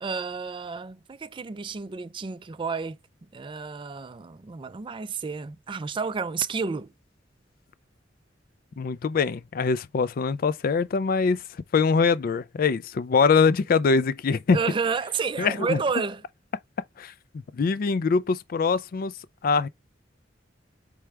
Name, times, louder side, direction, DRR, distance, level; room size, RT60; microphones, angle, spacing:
voice 1, 0.0-3.0 3.3-6.9 14.5-16.2, right 5 dB, 25° right, 0.4 m, -30 dB
voice 2, 8.8-11.4 11.7-14.6 15.4-15.8 17.0-17.1 17.5-19.1 19.4-19.7, left 5 dB, 50° left, 0.4 m, -23 dB
4.7 x 3.4 x 3.3 m
head